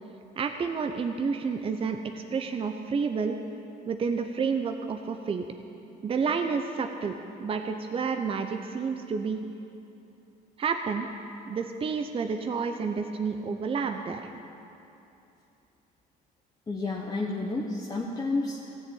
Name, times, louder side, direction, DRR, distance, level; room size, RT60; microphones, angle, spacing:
voice 1, 0.4-3.4 3.9-5.4 6.0-7.1 7.4-9.4 10.6-11.1 11.5-14.3, right 5 dB, 35° right, 6 dB, 0.7 m, -30 dB
voice 2, 16.7-18.7, left 3 dB, 20° left, -2 dB, 1.2 m, -31 dB
15.5 x 7.5 x 8.6 m, 2.8 s
cardioid pair, 110°, 17 cm